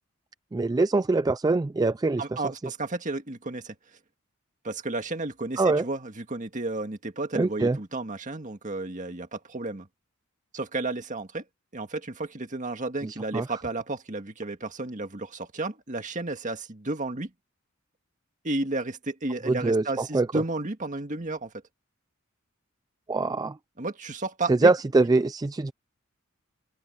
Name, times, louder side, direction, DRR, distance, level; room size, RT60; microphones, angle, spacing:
voice 1, 0.5-2.4 5.6-5.9 7.3-7.8 13.0-13.5 19.5-20.3 23.1-23.6 24.5-25.7, right 3 dB, 20° right, 0.3 m, -23 dB
voice 2, 2.2-3.7 4.6-9.9 10.5-11.4 11.7-17.3 18.4-21.5 23.8-24.7, right 2 dB, 35° right, 1.8 m, -32 dB
open air
head